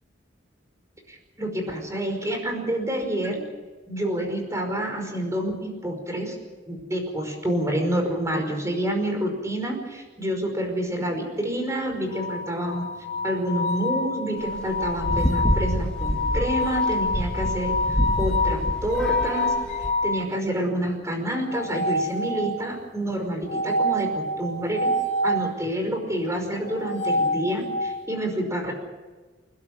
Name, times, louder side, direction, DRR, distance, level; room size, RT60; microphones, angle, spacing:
voice 1, 1.1-3.4 3.9-6.4 6.7-12.9 13.2-17.7 18.2-19.5 20.0-24.9 25.2-28.7, right 1 dB, 15° right, 4 dB, 5.3 m, -28 dB
sound 1, 12.1-20.2 21.5-22.7 23.5-25.5 26.7-28.0, left 1 dB, 45° left, 4.0 m, -27 dB
sound 2, 14.5-19.9, equal, 5° left, 1.9 m, -27 dB
29.0 x 12.5 x 9.6 m, 1.3 s
head